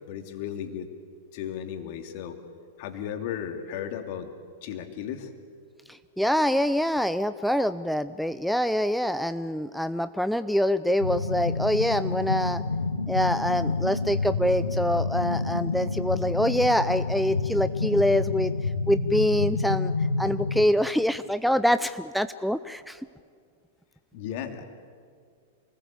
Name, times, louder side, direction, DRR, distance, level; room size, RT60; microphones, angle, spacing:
voice 1, 0.1-0.9 1.3-2.4 2.8-4.3 4.6-5.3 24.1-24.6, left 9 dB, 50° left, 6 dB, 2.6 m, -35 dB
voice 2, 6.2-12.6 13.1-18.5 18.9-19.9 20.2-23.0, equal, ahead, 12 dB, 0.6 m, -25 dB
sound 1, 11.0-20.7, left 3 dB, 80° left, 1.2 m, -28 dB
28.0 x 20.5 x 8.5 m, 2.1 s
figure-of-eight pair, 95°, 0 cm